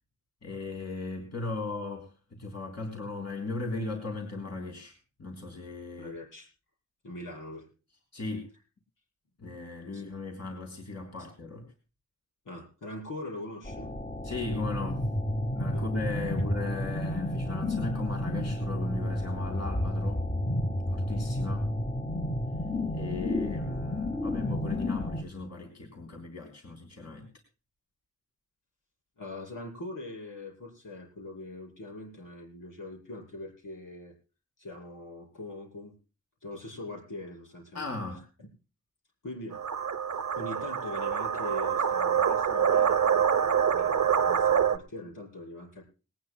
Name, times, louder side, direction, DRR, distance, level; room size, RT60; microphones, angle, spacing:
voice 1, 0.4-4.9 5.2-6.1 8.1-8.5 9.4-11.6 14.2-15.1 15.5-20.2 20.9-21.7 22.9-27.3 37.7-38.2, left 3 dB, 55° left, 1 dB, 3.7 m, -37 dB
voice 2, 6.0-6.5 7.0-7.7 9.9-10.0 12.5-13.9 15.7-15.8 29.2-34.1 34.6-36.0 36.4-37.9 38.4-38.5 39.2-39.6 40.4-45.8, left 2 dB, 85° left, -2 dB, 5.5 m, -42 dB
sound 1, 13.6-25.2, left 1 dB, 25° left, 1.8 m, -31 dB
sound 2, 39.5-44.8, right 8 dB, 65° right, 0.9 m, -26 dB
20.0 x 19.0 x 2.3 m, 0.34 s
wide cardioid pair, 95°, 31 cm